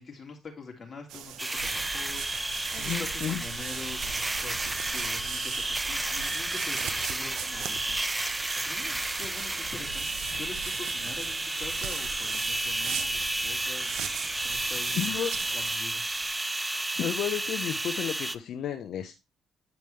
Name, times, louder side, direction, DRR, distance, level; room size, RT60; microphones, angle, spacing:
voice 1, 0.0-2.4 2.7-7.9 8.5-13.9 14.4-15.1 15.5-16.0, left 4 dB, 35° left, 1 dB, 3.1 m, -45 dB
sound 1, 1.1-15.8, right 10 dB, 85° right, 0.7 m, -40 dB
sound 2, 1.4-18.4, right 2 dB, 15° right, 0.5 m, -32 dB
Camera, 1.6-16.3, right 7 dB, 55° right, 2.3 m, -48 dB
voice 2, 2.8-3.4 14.9-15.3 17.0-19.1, left 10 dB, 75° left, 6 dB, 0.8 m, -32 dB
9.3 x 5.2 x 3.2 m, 0.25 s
cardioid pair, 90°, 0 cm